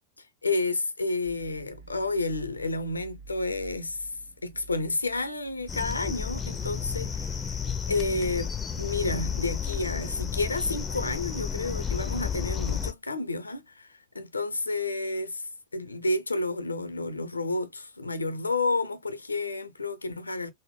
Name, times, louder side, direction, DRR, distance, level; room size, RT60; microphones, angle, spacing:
voice 1, 0.4-4.1 4.4-7.6 7.9-20.5, left 2 dB, 80° left, 0.5 m, -30 dB
sound 1, 1.2-12.8, right 4 dB, 70° right, 1.1 m, -53 dB
sound 2, 5.7-12.9, left 7 dB, 15° left, 0.6 m, -32 dB
3.8 x 2.1 x 3.4 m
figure-of-eight pair, 90°, 0 cm